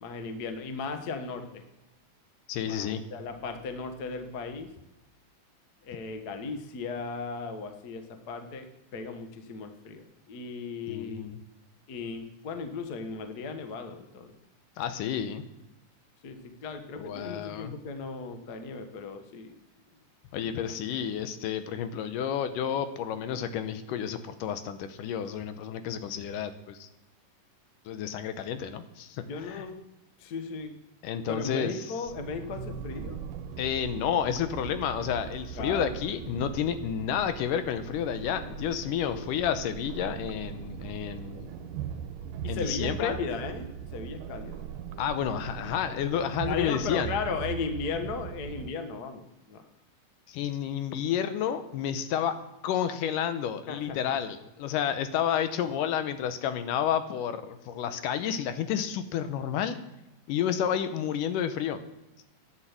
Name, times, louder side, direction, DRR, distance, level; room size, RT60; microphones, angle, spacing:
voice 1, 0.0-1.6 2.6-4.7 5.8-11.3 11.9-14.3 16.2-19.5 29.2-29.8 30.2-30.7 31.3-33.3 35.6-35.9 39.1-39.3 42.4-44.6 46.4-49.6 53.7-54.2, left 4 dB, 60° left, 7 dB, 1.0 m, -36 dB
voice 2, 2.5-3.0 10.9-11.4 14.8-15.4 16.9-17.7 20.3-26.9 27.9-29.7 31.0-31.8 33.6-41.7 42.5-43.2 45.0-47.1 50.3-52.4 52.6-59.8 60.3-61.8, left 9 dB, 80° left, 10 dB, 2.4 m, -30 dB
sound 1, 32.1-48.7, right 8 dB, 85° right, 2.3 m, -40 dB
11.5 x 9.0 x 7.4 m, 0.94 s
omnidirectional pair, 3.8 m